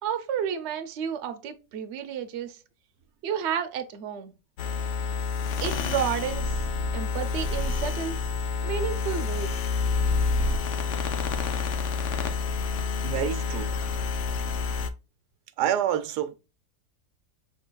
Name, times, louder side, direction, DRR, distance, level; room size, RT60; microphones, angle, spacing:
voice 1, 0.0-2.6 3.2-4.3 5.6-6.6 6.9-8.2 8.6-9.5, right 8 dB, 55° right, 0.8 m, -31 dB
sound 1, 4.6-14.9, left 4 dB, 65° left, 0.8 m, -28 dB
voice 2, 13.0-13.7 15.6-16.3, right 10 dB, 80° right, 1.2 m, -27 dB
5.5 x 3.7 x 2.2 m
omnidirectional pair, 1.7 m